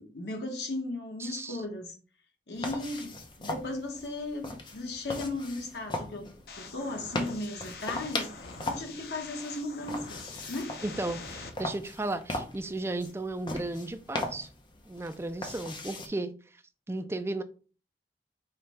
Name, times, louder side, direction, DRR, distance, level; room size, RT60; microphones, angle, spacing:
voice 1, 0.0-1.9 2.5-6.3 6.6-10.7, left 2 dB, 75° left, 1.2 m, -36 dB
voice 2, 1.2-1.6 10.8-14.5 14.9-16.3 16.9-17.4, right 2 dB, 15° right, 0.3 m, -34 dB
sound 1, 2.6-16.1, left 2 dB, 25° left, 0.6 m, -39 dB
sound 2, 6.5-11.5, left 4 dB, 60° left, 0.7 m, -45 dB
5.0 x 2.3 x 4.2 m
head